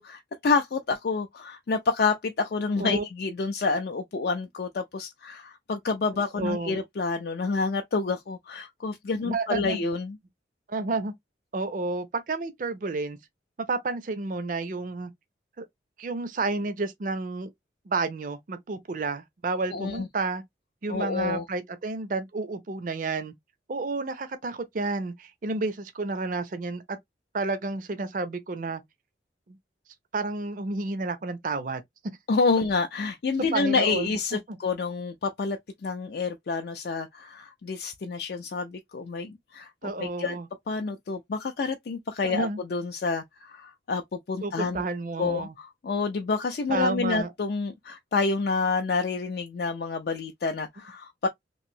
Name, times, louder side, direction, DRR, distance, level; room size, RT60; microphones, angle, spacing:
voice 1, 0.0-10.2 19.7-20.1 20.9-21.4 32.3-40.4 40.7-44.9 45.2-51.3, left 4 dB, 55° left, 0.4 m, -28 dB
voice 2, 6.4-6.8 9.2-9.8 10.7-11.1 11.5-13.2 13.7-15.1 15.6-15.7 16.0-17.5 17.9-20.4 20.8-23.3 23.7-27.0 27.3-28.8 29.5-29.6 30.1-31.8 33.5-34.6 39.8-40.5 42.2-42.6 44.4-45.5 46.7-47.3, right 3 dB, 45° right, 0.5 m, -30 dB
3.0 x 2.5 x 2.6 m
head